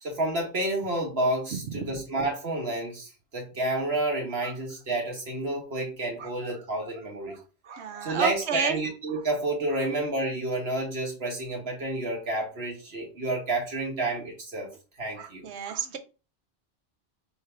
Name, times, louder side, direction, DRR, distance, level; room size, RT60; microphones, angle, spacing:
voice 1, 0.0-7.3 8.0-14.7 15.0-15.4, right 2 dB, 70° right, 0 dB, 1.6 m, -30 dB
voice 2, 7.7-8.8 15.2-16.0, right 7 dB, 85° right, 6 dB, 1.0 m, -31 dB
3.5 x 3.2 x 4.4 m, 0.32 s
omnidirectional pair, 1.1 m